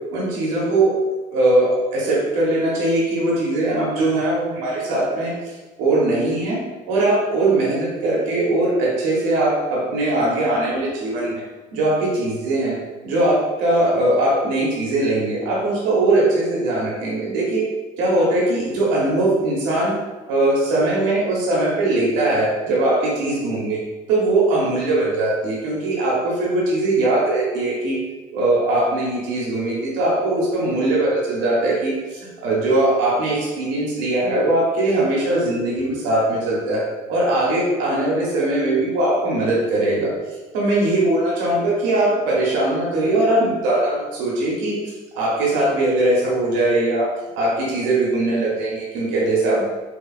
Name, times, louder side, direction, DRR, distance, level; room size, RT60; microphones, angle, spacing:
voice 1, 0.1-0.9 1.3-6.6 6.9-11.4 11.7-12.7 13.0-17.6 18.0-19.9 20.3-23.8 24.1-28.0 28.3-40.1 40.5-47.1 47.3-49.6, right 2 dB, 75° right, -5 dB, 1.2 m, -20 dB
4.5 x 2.4 x 2.4 m, 1.2 s
hypercardioid pair, 65°, 19 cm